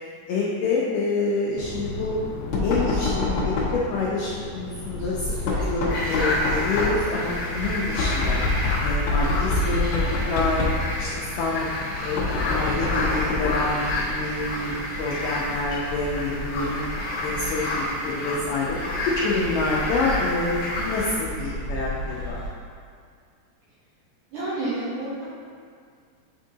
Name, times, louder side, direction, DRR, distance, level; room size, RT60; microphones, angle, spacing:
voice 1, 0.3-2.1 2.6-8.4 8.8-10.7 11.0-11.1 11.4-11.7 12.0-12.2 12.5-16.9 17.2-18.8 19.0-22.4, left 3 dB, 90° left, -5 dB, 1.8 m, -27 dB
Knock, 1.6-13.8, left 3 dB, 70° left, 1.8 m, -27 dB
sound 1, 5.0-22.5, equal, 90° right, 3.4 m, -35 dB
sound 2, 5.9-21.1, left 1 dB, 55° left, 1.5 m, -30 dB
voice 2, 24.3-25.3, right 2 dB, 70° right, -8 dB, 2.0 m, -29 dB
9.6 x 3.6 x 2.7 m, 2.2 s
omnidirectional pair, 4.6 m